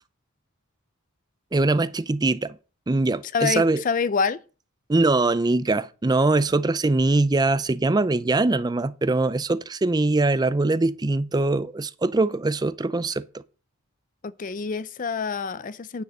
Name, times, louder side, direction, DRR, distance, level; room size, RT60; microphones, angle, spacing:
voice 1, 1.5-2.6 2.9-3.8 4.9-13.2, right 2 dB, 20° right, 0.4 m, -22 dB
voice 2, 3.3-4.4 14.2-16.0, left 5 dB, 35° left, 0.5 m, -26 dB
9.5 x 6.5 x 6.5 m
head